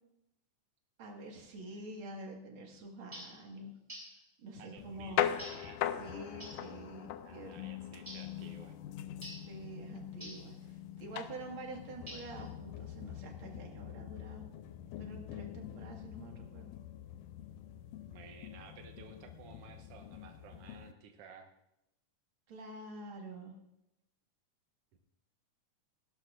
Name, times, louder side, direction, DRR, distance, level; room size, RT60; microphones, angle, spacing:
voice 1, 1.0-3.8 4.4-5.3 6.0-7.6 9.5-14.5 15.0-16.7 22.5-23.5, right 2 dB, 45° right, 1 dB, 2.2 m, -47 dB
sound 1, 3.1-3.4 3.9-4.2 5.4-5.7 6.4-6.7 8.1-8.4 9.2-9.5 10.2-10.5 12.1-12.5, equal, 10° right, 2.8 m, -48 dB
voice 2, 4.6-6.1 7.2-8.8 15.9-16.0 18.0-21.5 24.9-25.0, right 6 dB, 80° right, 4 dB, 1.3 m, -55 dB
sound 2, 4.8-20.9, left 11 dB, 85° left, 2.2 m, -42 dB
18.0 x 12.0 x 2.5 m, 0.87 s
omnidirectional pair, 3.7 m